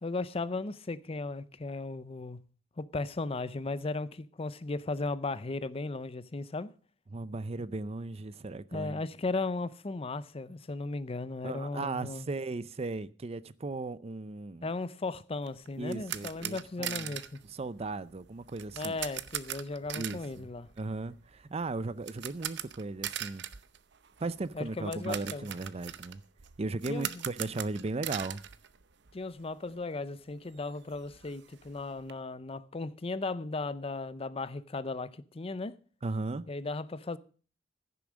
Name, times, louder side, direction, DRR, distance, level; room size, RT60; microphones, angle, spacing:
voice 1, 0.0-2.4 2.8-6.7 8.7-12.3 14.6-17.4 18.8-20.7 24.5-25.5 26.9-27.2 29.1-35.7 36.5-37.2, left 3 dB, 30° left, 0.6 m, -36 dB
voice 2, 7.1-9.0 11.4-14.7 15.8-17.2 17.5-19.0 20.0-20.5 20.8-23.4 24.2-26.2 26.6-28.4 36.0-36.5, right 3 dB, 35° right, 0.5 m, -36 dB
sound 1, 15.4-29.4 29.7-29.8 30.2-30.3 30.6-32.1, right 11 dB, 65° right, 0.7 m, -41 dB
15.5 x 7.0 x 6.3 m
head